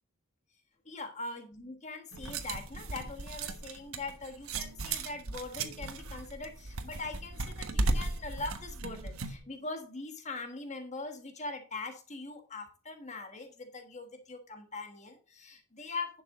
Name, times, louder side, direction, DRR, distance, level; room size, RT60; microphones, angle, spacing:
voice 1, 0.8-16.2, left 3 dB, 35° left, 6 dB, 1.4 m, -42 dB
sound 1, 2.1-9.4, right 3 dB, 85° right, 1.3 m, -36 dB
11.0 x 6.9 x 3.7 m, 0.37 s
head